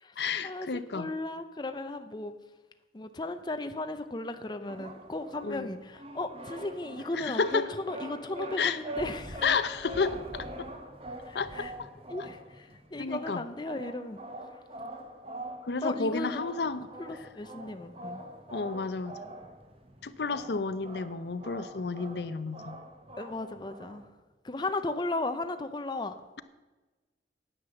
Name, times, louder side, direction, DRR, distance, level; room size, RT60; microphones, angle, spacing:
voice 1, 0.2-1.1 5.4-5.7 7.1-7.7 8.6-8.8 9.4-10.7 11.3-11.9 13.0-13.4 15.6-17.3 18.5-19.2 20.0-22.8, left 4 dB, 70° left, 13 dB, 0.6 m, -31 dB
voice 2, 0.9-2.3 2.9-9.4 11.3-11.7 12.1-14.2 15.8-16.4 17.0-18.2 23.2-24.0 24.4-26.2, left 2 dB, 25° left, 8 dB, 0.5 m, -36 dB
sound 1, 4.7-24.1, right 1 dB, 35° right, 1.2 m, -44 dB
9.7 x 8.7 x 6.9 m, 1.2 s
head